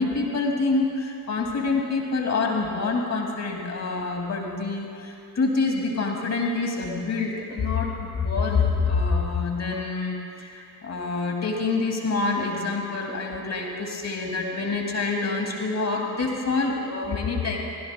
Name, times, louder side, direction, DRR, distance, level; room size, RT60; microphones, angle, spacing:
voice 1, 0.0-17.6, left 3 dB, 30° left, 1 dB, 2.3 m, -26 dB
23.5 x 16.0 x 2.2 m, 2.6 s
figure-of-eight pair, 55°, 49 cm